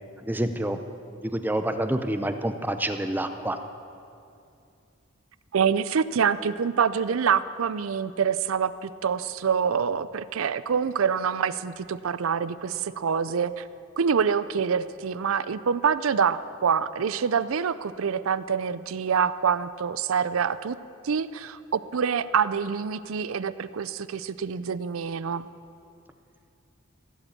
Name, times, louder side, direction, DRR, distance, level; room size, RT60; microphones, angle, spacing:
voice 1, 0.3-0.8 1.2-3.6, right 1 dB, 10° right, 8 dB, 0.6 m, -27 dB
voice 2, 5.5-13.7 14.0-20.8 21.0-25.5, right 6 dB, 80° right, 16 dB, 0.5 m, -26 dB
16.0 x 8.1 x 8.6 m, 2.5 s
head